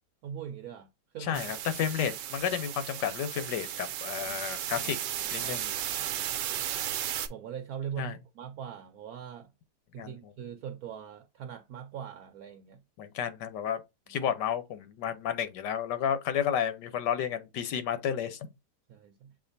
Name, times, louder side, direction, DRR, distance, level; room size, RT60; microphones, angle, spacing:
voice 1, 0.2-0.9 1.1-1.5 4.3-4.4 4.8-4.9 5.2-6.2 7.3-9.5 9.9-12.8 18.9-19.3, right 8 dB, 70° right, 1.0 m, -41 dB
voice 2, 1.2-5.0 5.3-5.7 8.0-8.2 10.0-10.3 13.0-13.8 14.1-18.4, left 9 dB, 85° left, 1.4 m, -31 dB
sound 1, 1.3-7.3, right 11 dB, 90° right, 1.2 m, -35 dB
7.4 x 2.5 x 2.6 m
omnidirectional pair, 1.8 m